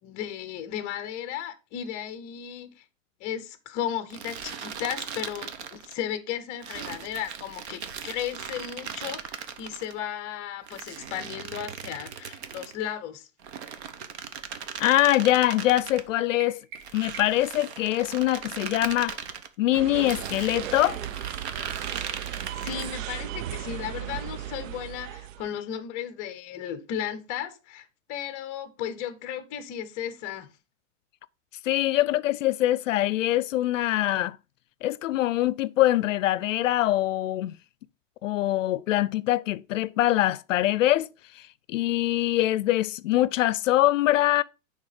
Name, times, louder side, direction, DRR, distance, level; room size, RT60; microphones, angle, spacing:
voice 1, 0.0-2.8 3.2-13.3 22.6-30.5, left 10 dB, 20° left, 0.6 m, -35 dB
sound 1, 4.1-6.0 6.6-9.9 10.7-12.8 13.4-16.1 16.8-19.5 20.1-23.0, right 7 dB, 55° right, 1.0 m, -38 dB
voice 2, 14.8-16.6 16.9-19.2 19.6-21.0 31.6-34.4 34.8-37.6 38.2-41.1 41.3-44.4, left 15 dB, 75° left, 0.5 m, -23 dB
sound 2, 16.4-17.6, right 5 dB, 35° right, 1.3 m, -45 dB
sound 3, 19.7-25.5, right 12 dB, 80° right, 0.6 m, -36 dB
9.7 x 3.5 x 4.9 m
supercardioid pair, 165°, 39 cm